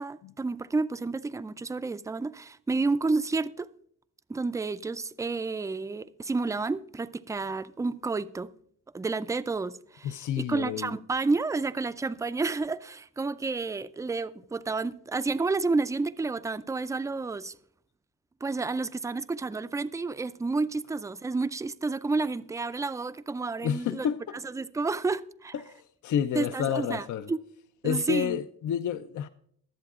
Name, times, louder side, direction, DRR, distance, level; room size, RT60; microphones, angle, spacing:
voice 1, 0.0-3.7 4.3-8.5 8.9-17.6 18.4-24.1 24.4-25.5 26.3-27.4 27.8-28.4, right 3 dB, 10° right, 0.3 m, -30 dB
voice 2, 10.0-11.0 23.6-24.4 25.5-27.3 27.8-29.3, left 9 dB, 60° left, 0.5 m, -30 dB
22.5 x 7.6 x 2.4 m
cardioid pair, 80°, 34 cm